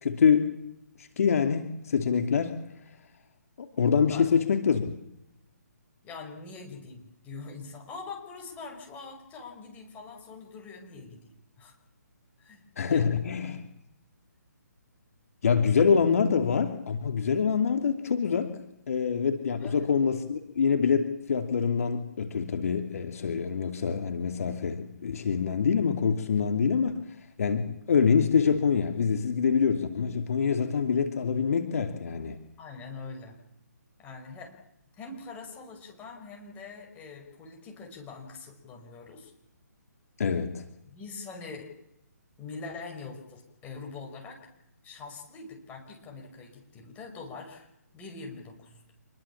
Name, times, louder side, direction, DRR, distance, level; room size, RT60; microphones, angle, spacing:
voice 1, 0.0-0.5 1.0-2.6 3.6-4.9 12.8-13.6 15.4-26.9 27.4-32.4 40.2-40.6, left 6 dB, 55° left, 6 dB, 2.7 m, -25 dB
voice 2, 6.0-11.2 11.6-11.7 12.4-13.0 19.6-19.9 32.6-33.4 34.0-34.5 35.0-39.3 40.9-41.7 42.4-44.4 44.8-47.7 47.9-48.8, left 4 dB, 15° left, 2 dB, 5.5 m, -43 dB
27.0 x 21.5 x 7.3 m, 0.81 s
figure-of-eight pair, 145°, 9 cm